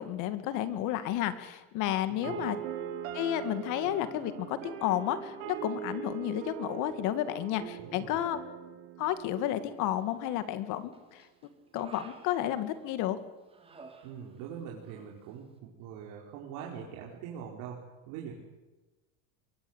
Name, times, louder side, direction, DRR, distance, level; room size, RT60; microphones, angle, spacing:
voice 1, 0.0-2.6 3.1-8.4 9.0-11.3 11.7-13.2, left 12 dB, 50° left, 11 dB, 2.3 m, -32 dB
voice 2, 2.1-2.4 7.8-8.2 14.0-18.3, right 8 dB, 55° right, -2 dB, 4.9 m, -43 dB
sound 1, 2.2-10.2, right 9 dB, 80° right, 5.9 m, -41 dB
Human voice, 9.9-10.5 10.9-13.1 13.5-14.6 14.8-15.1, right 4 dB, 15° right, 3.2 m, -54 dB
26.0 x 23.0 x 8.2 m, 1.1 s
cardioid pair, 165°, 40 cm